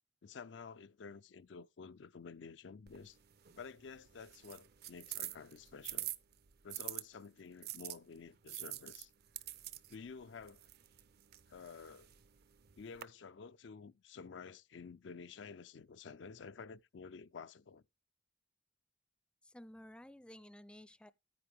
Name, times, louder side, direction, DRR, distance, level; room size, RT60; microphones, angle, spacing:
voice 1, 0.2-3.2 3.6-6.1 6.6-9.1 9.9-10.7 11.5-12.1 12.8-17.8, left 5 dB, 80° left, 0.5 m, -51 dB
sound 1, 2.9-7.0 7.6-13.0, right 14 dB, 60° right, 0.6 m, -47 dB
voice 2, 19.4-21.1, equal, 5° left, 0.4 m, -54 dB
9.7 x 9.6 x 3.5 m
head